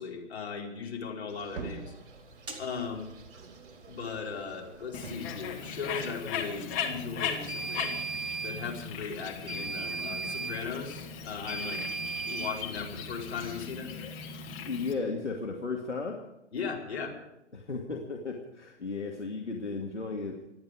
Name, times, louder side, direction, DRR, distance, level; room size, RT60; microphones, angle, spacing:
voice 1, 0.0-1.9 2.5-3.1 3.9-7.9 8.4-11.8 12.3-13.9 16.5-17.1, left 5 dB, 65° left, -1 dB, 4.8 m, -37 dB
sound 1, 1.3-6.5, right 4 dB, 45° right, 3.8 m, -47 dB
sound 2, 2.5-2.6 7.5-8.6 9.5-10.6 11.5-12.6, right 4 dB, 15° right, 2.3 m, -35 dB
Bird, 4.9-14.9, left 6 dB, 25° left, 1.9 m, -38 dB
voice 2, 14.7-16.2 17.5-20.4, left 4 dB, 80° left, 0 dB, 2.5 m, -35 dB
27.0 x 10.5 x 5.0 m, 0.90 s
figure-of-eight pair, 125°, 35 cm